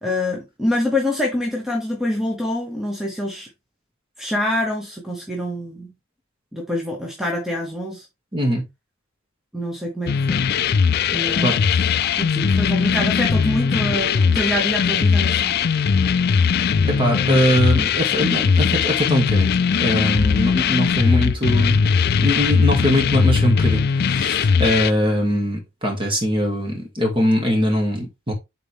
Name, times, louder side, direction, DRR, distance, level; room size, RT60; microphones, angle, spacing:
voice 1, 0.0-3.5 4.2-5.9 6.5-8.1 9.5-10.4 11.1-11.7 12.2-15.6, left 1 dB, ahead, 1.1 m, -25 dB
voice 2, 8.3-8.6 11.4-11.6 16.8-21.8 22.2-28.3, equal, 25° right, 2.5 m, -21 dB
sound 1, 10.1-24.9, left 6 dB, 50° left, 0.4 m, -19 dB
7.6 x 4.1 x 3.5 m
head